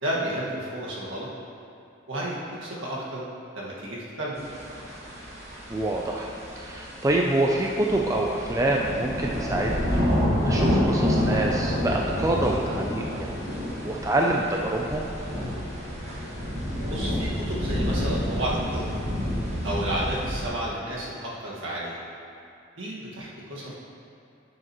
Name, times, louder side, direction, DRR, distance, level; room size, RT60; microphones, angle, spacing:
voice 1, 0.0-1.3 2.1-3.3 3.5-4.4 16.9-19.0 19.6-22.0 22.8-23.7, right 1 dB, 65° right, -6 dB, 1.7 m, -31 dB
sound 1, 4.4-20.5, equal, 35° right, 1.6 m, -28 dB
voice 2, 5.7-6.3 6.6-13.3 13.8-15.1, right 1 dB, 15° right, -1 dB, 0.4 m, -26 dB
10.5 x 6.5 x 3.0 m, 2.6 s
head